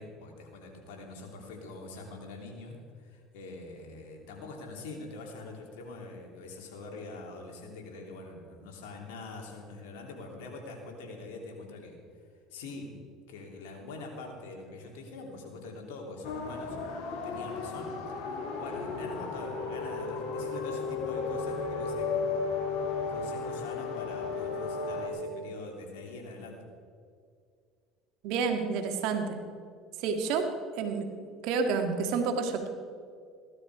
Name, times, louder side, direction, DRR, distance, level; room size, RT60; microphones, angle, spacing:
voice 1, 0.0-12.0 12.5-13.0 13.3-16.8 17.2-18.0 18.3-22.4 23.1-26.7, left 3 dB, 80° left, 1 dB, 3.1 m, -44 dB
sound 1, 16.2-25.1, left 4 dB, 65° left, 3.3 m, -34 dB
voice 2, 28.2-29.4 30.0-30.5 30.7-31.1 31.4-32.7, right 5 dB, 70° right, 5 dB, 1.8 m, -29 dB
16.5 x 12.0 x 4.9 m, 2.2 s
supercardioid pair, 90°, 0 cm